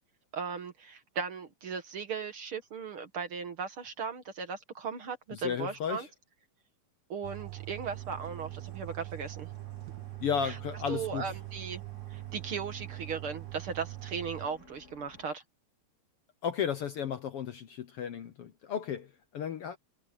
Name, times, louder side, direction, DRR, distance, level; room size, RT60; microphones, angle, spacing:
voice 1, 0.3-6.1 7.1-9.5 10.4-10.6 10.9-11.8 12.1-15.4, right 5 dB, 50° right, 2.2 m, -37 dB
voice 2, 5.3-6.1 10.2-11.3 16.4-19.8, left 7 dB, 65° left, 1.6 m, -34 dB
sound 1, 7.2-14.5, right 25 dB, 80° right, 1.9 m, -42 dB
sound 2, 7.6-15.2, left 2 dB, 25° left, 3.1 m, -57 dB
omnidirectional pair, 3.4 m